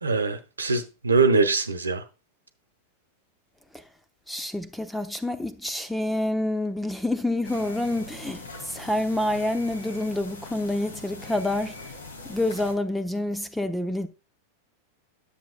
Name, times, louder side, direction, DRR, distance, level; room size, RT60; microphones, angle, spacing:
voice 1, 0.0-2.0, right 4 dB, 90° right, 1.1 m, -23 dB
voice 2, 4.3-11.9 12.2-14.1, left 1 dB, 5° left, 0.9 m, -28 dB
sound 1, 7.4-12.7, left 2 dB, 85° left, 2.3 m, -42 dB
10.0 x 7.5 x 2.2 m
hypercardioid pair, 95°, 0 cm